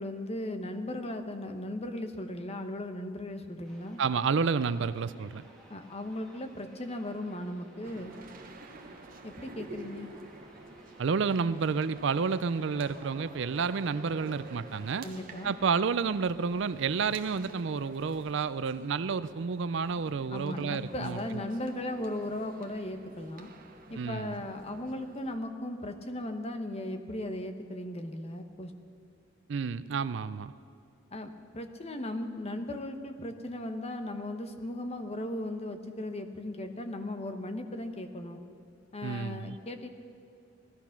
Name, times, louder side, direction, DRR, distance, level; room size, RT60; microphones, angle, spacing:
voice 1, 0.0-4.0 5.7-8.2 9.2-10.1 15.0-15.5 20.3-23.5 23.9-28.7 31.1-38.4 38.9-39.9, left 1 dB, 35° left, 7 dB, 1.1 m, -37 dB
sound 1, 3.6-17.4, right 1 dB, 5° left, 2.7 m, -58 dB
voice 2, 4.0-5.4 11.0-15.1 15.4-21.2 24.0-24.4 29.5-30.5 39.0-39.6, right 5 dB, 70° right, 15 dB, 0.5 m, -30 dB
sound 2, 7.8-25.4, right 2 dB, 45° right, 1.2 m, -50 dB
18.5 x 13.5 x 5.9 m, 2.5 s
head